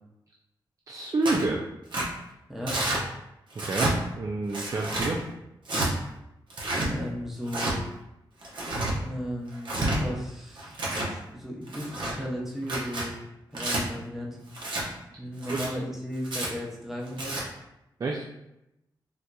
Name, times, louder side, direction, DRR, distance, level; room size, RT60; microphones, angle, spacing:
voice 1, 0.9-1.6 3.6-5.2 15.5-15.7 18.0-18.2, right 2 dB, 40° right, 0 dB, 0.4 m, -29 dB
Tearing, 1.2-1.5 1.9-2.1 2.7-3.0 3.5-3.9 4.5-5.1 5.6-5.9 6.5-6.9 7.5-7.7 8.4-8.9 9.5-10.0 10.6-11.1 11.7-12.1 12.6-13.1 13.5-13.8 14.5-14.8 15.4-15.7 16.2-16.5 17.1-17.4, right 2 dB, 70° right, 0.8 m, -29 dB
voice 2, 6.9-7.9 9.0-13.1 13.5-14.4 15.2-17.4, equal, 5° right, -3 dB, 0.7 m, -35 dB
3.7 x 2.8 x 2.2 m, 0.89 s
cardioid pair, 80°, 8 cm